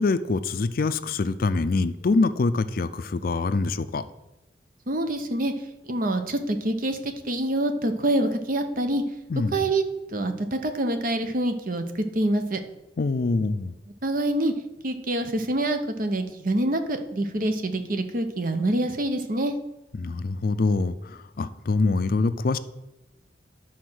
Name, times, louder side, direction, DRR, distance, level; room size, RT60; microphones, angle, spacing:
voice 1, 0.0-4.0 9.3-9.7 13.0-13.7 20.0-22.6, left 3 dB, 55° left, 13 dB, 0.4 m, -25 dB
voice 2, 4.9-5.5 5.8-9.0 9.5-9.8 10.1-12.6 14.0-14.5 14.8-19.6, right 1 dB, 50° right, 7 dB, 0.9 m, -26 dB
11.0 x 4.3 x 6.2 m, 0.94 s
head